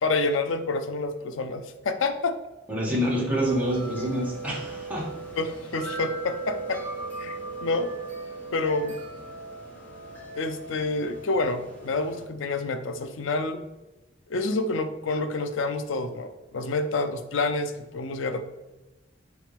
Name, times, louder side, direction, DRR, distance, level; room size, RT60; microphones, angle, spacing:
voice 1, 0.0-2.4 5.4-6.8 7.2-7.9 8.5-9.0 10.3-13.6 14.3-18.4, left 3 dB, 80° left, 9 dB, 0.5 m, -28 dB
voice 2, 2.7-5.1, equal, 10° right, -6 dB, 2.0 m, -27 dB
sound 1, 3.4-12.2, right 3 dB, 10° left, 1.3 m, -37 dB
6.3 x 5.1 x 3.4 m, 1.0 s
head